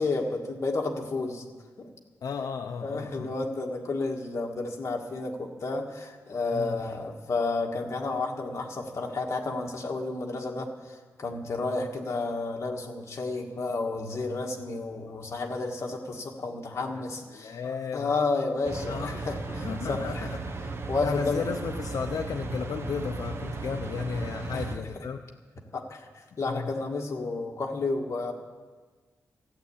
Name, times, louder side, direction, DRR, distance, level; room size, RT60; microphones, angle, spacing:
voice 1, 0.0-1.4 1.8-1.9 2.8-20.3 20.9-21.5 24.5-24.6 24.9-25.0 25.7-28.3, left 3 dB, 45° left, 0 dB, 1.7 m, -31 dB
voice 2, 2.2-3.3 6.5-6.8 16.9-17.0 17.3-18.1 18.9-19.3 19.5-20.6 21.0-25.2 26.4-26.7, left 6 dB, 70° left, 5 dB, 0.6 m, -34 dB
sound 1, 18.6-24.8, right 3 dB, 40° right, 1.0 m, -36 dB
14.0 x 9.4 x 8.6 m, 1.4 s
wide cardioid pair, 180°, 6 cm